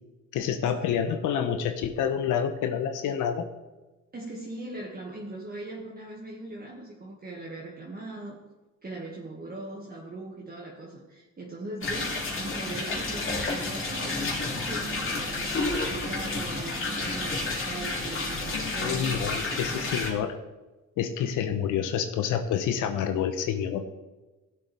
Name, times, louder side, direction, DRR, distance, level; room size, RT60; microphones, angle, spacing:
voice 1, 0.3-3.5 18.5-20.3 21.0-23.8, left 8 dB, 85° left, 7 dB, 1.0 m, -28 dB
voice 2, 4.1-8.4 8.8-19.5, right 2 dB, 30° right, -3 dB, 2.0 m, -40 dB
sound 1, 11.8-20.1, left 2 dB, 40° left, 3.3 m, -30 dB
16.5 x 7.7 x 3.5 m, 1.1 s
cardioid pair, 90°, 30 cm